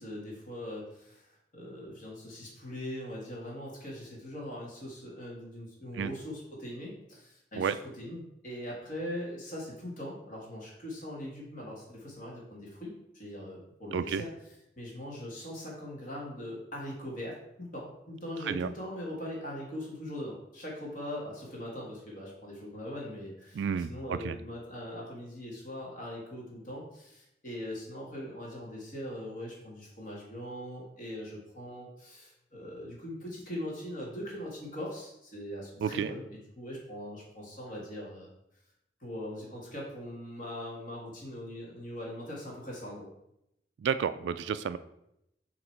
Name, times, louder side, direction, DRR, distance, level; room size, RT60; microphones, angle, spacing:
voice 1, 0.0-14.3 14.8-38.3 39.0-43.1, left 1 dB, 50° left, -3 dB, 1.6 m, -41 dB
voice 2, 13.9-14.2 18.5-18.7 23.6-24.3 35.8-36.1 43.8-44.8, right 7 dB, 80° right, 12 dB, 0.3 m, -31 dB
7.8 x 2.9 x 4.5 m, 0.81 s
head